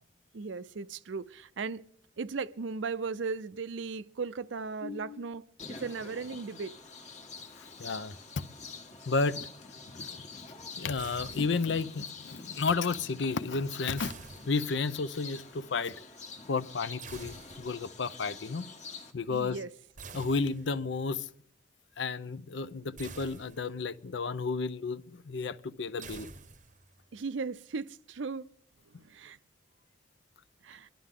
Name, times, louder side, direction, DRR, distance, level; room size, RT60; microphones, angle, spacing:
voice 1, 0.3-1.8 2.2-5.4 5.7-6.7 19.3-19.7 27.1-28.4 29.1-29.4 30.6-30.9, right 4 dB, 75° right, 0.5 m, -37 dB
voice 2, 4.8-5.3 7.6-8.4 9.1-9.4 10.8-14.2 14.5-16.0 16.5-18.7 19.1-19.6 20.1-21.3 22.0-26.3, left 4 dB, 65° left, 0.6 m, -32 dB
sound 1, 5.6-19.1, left 4 dB, 35° left, 1.3 m, -46 dB
sound 2, 11.0-11.9 14.0-15.1 17.0-18.0 20.0-21.0 23.0-24.0 26.0-27.0, right 4 dB, 40° right, 0.8 m, -48 dB
24.5 x 11.5 x 3.7 m
head